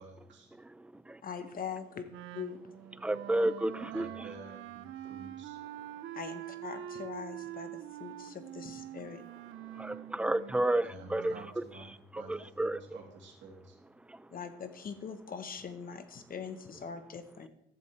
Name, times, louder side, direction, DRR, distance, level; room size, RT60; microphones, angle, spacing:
voice 1, 0.0-0.5 3.9-5.6 10.8-13.8, right 3 dB, 70° right, -1 dB, 2.6 m, -50 dB
voice 2, 0.6-1.2 3.0-4.3 9.7-12.8 14.1-14.3, right 1 dB, 5° right, 15 dB, 0.4 m, -32 dB
voice 3, 1.2-2.0 2.3-2.6 6.1-9.2 14.3-17.5, left 6 dB, 45° left, 9 dB, 1.1 m, -42 dB
Wind instrument woodwind instrument, 2.1-11.6, right 12 dB, 85° right, 0.4 m, -45 dB
12.5 x 7.4 x 3.3 m, 0.78 s
cardioid pair, 90°, 20 cm